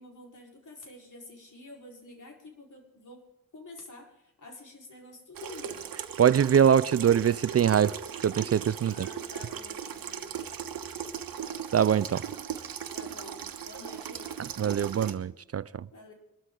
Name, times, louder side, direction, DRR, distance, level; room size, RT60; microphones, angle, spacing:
voice 1, 0.0-3.2 3.5-5.9 8.8-10.4 12.9-14.4 15.9-16.1, left 2 dB, 60° left, 4.6 m, -48 dB
Water tap faucet / Sink (filling or washing), 5.3-15.1, right 8 dB, 85° right, 1.2 m, -38 dB
voice 2, 6.2-9.1 11.7-12.2 14.6-15.9, right 8 dB, 45° right, 0.4 m, -23 dB
23.0 x 13.0 x 3.9 m
cardioid pair, 75°, 34 cm